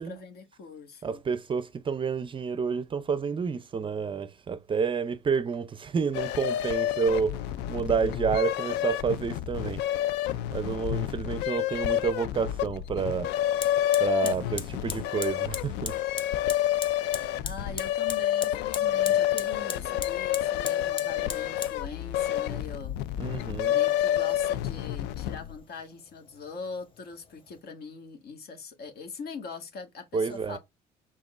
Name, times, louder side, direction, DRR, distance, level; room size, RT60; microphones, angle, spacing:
voice 1, 0.0-1.2 14.2-14.5 17.4-23.3 23.7-30.6, left 4 dB, 70° left, 1.6 m, -42 dB
voice 2, 1.0-9.9 10.3-13.3 14.0-16.0 16.5-16.6 23.2-23.8 30.1-30.6, right 6 dB, 30° right, 0.5 m, -29 dB
sound 1, 6.1-25.6, left 12 dB, 90° left, 0.4 m, -29 dB
Fire, 13.6-27.6, left 5 dB, 30° left, 0.7 m, -42 dB
5.0 x 3.6 x 2.4 m
cardioid pair, 110°, 17 cm